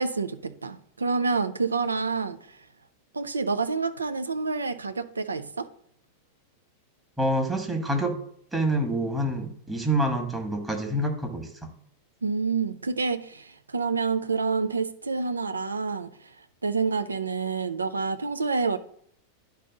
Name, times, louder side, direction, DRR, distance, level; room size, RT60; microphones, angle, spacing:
voice 1, 0.0-2.4 3.1-5.7 12.2-16.1 16.6-18.8, right 4 dB, 75° right, 0.5 m, -28 dB
voice 2, 7.2-8.1 8.5-11.5, right 1 dB, 10° right, 1.4 m, -26 dB
10.0 x 4.0 x 3.8 m
figure-of-eight pair, 90°, 0 cm